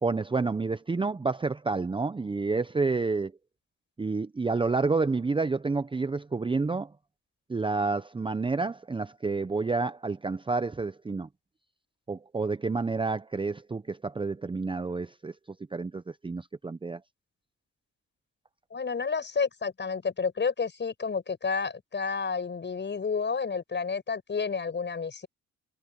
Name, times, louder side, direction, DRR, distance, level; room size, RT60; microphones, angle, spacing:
voice 1, 0.0-3.3 4.0-6.9 7.5-11.3 12.1-15.3 15.7-17.0, right 4 dB, 15° right, 0.7 m, -29 dB
voice 2, 18.7-25.3, left 5 dB, 35° left, 6.6 m, -30 dB
cardioid pair, 90°, 30 cm